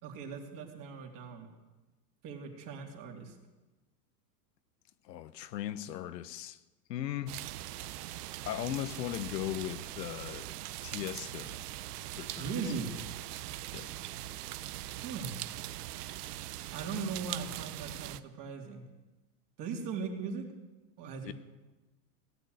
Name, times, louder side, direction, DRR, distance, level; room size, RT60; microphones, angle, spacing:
voice 1, 0.0-1.5 2.2-3.3 12.4-12.9 15.0-15.4 16.7-18.9 19.6-20.5 21.0-21.3, right 5 dB, 40° right, 3.2 m, -39 dB
voice 2, 5.0-6.6 6.9-7.4 8.4-10.5 10.8-11.6 12.2-12.5 13.7-14.0 21.2-21.3, left 12 dB, 90° left, 1.0 m, -38 dB
sound 1, 7.3-18.2, right 15 dB, 70° right, 0.8 m, -41 dB
17.5 x 10.0 x 8.0 m
supercardioid pair, 130°, 48 cm